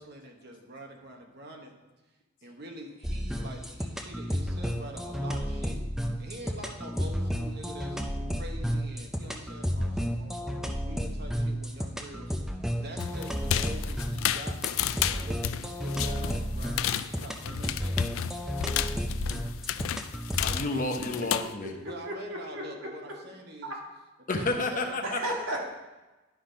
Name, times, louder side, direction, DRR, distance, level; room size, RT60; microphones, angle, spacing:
voice 1, 0.0-1.7 2.4-5.8 6.2-8.0 8.3-12.3 12.8-14.6 15.0-18.0 21.8-23.7 24.3-25.0, right 1 dB, 50° right, 2 dB, 1.1 m, -45 dB
sound 1, 3.0-20.6, equal, ahead, 0.4 m, -32 dB
sound 2, 13.0-21.5, left 11 dB, 80° left, 0.3 m, -32 dB
voice 2, 20.4-21.8 24.3-25.2, left 2 dB, 40° left, 3 dB, 0.8 m, -30 dB
voice 3, 22.1-22.6 25.0-25.6, right 1 dB, 85° right, -2 dB, 1.8 m, -33 dB
10.5 x 4.1 x 5.1 m, 1.1 s
head